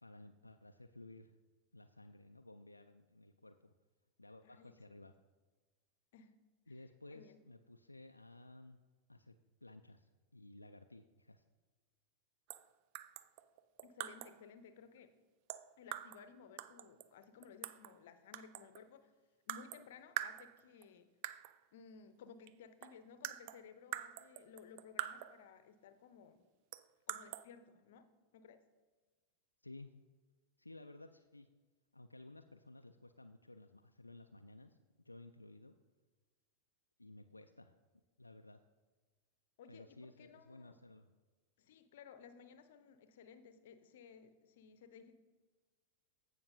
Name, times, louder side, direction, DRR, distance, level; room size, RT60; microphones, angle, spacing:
voice 1, 0.0-1.4 1.7-3.7 4.2-5.1 6.7-8.8 9.1-11.4 29.6-29.9 30.6-31.5 31.9-34.8 35.0-35.8 37.0-37.7 38.2-38.6 39.7-41.1, left 2 dB, 85° left, 7 dB, 0.3 m, -56 dB
voice 2, 4.4-5.1 6.1-6.3 7.1-7.4 13.8-15.1 15.8-19.1 19.5-21.1 21.7-26.4 27.1-28.1 28.3-28.6 39.6-40.8 41.6-45.1, left 6 dB, 55° left, 11 dB, 0.7 m, -58 dB
sound 1, 12.5-12.7 12.9-14.4 15.5-16.3 16.6-18.0 18.3-18.9 19.5-19.9 20.2-20.8 21.2-21.6 22.5-22.6 22.8-25.5 26.7-27.4, right 14 dB, 45° right, 0.3 m, -45 dB
15.5 x 5.9 x 2.7 m, 1.4 s
figure-of-eight pair, 90°, 0 cm